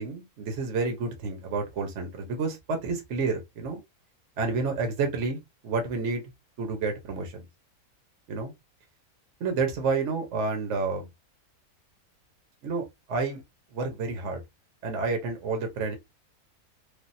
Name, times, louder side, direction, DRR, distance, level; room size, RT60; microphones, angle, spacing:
voice 1, 0.0-3.8 4.4-6.2 6.6-7.4 8.3-8.5 9.4-11.1 12.6-13.4 13.7-14.4 14.8-16.0, right 4 dB, 55° right, 1.1 m, -30 dB
3.4 x 2.5 x 2.6 m
omnidirectional pair, 1.6 m